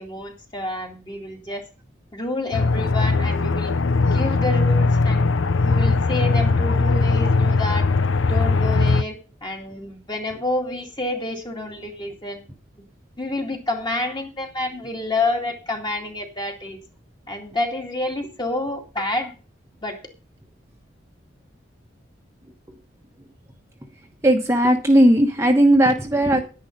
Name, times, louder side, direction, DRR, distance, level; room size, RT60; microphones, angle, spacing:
voice 1, 0.0-1.6 2.1-3.7 4.0-5.4 5.6-7.9 8.3-12.4 13.2-16.8 17.3-19.3 19.8-20.0, left 2 dB, 25° left, 2 dB, 2.4 m, -28 dB
Aircraft, 2.5-9.0, left 3 dB, 90° left, 0.7 m, -19 dB
voice 2, 24.2-26.4, right 1 dB, 15° right, 2 dB, 1.1 m, -16 dB
10.5 x 10.5 x 5.3 m, 0.34 s
head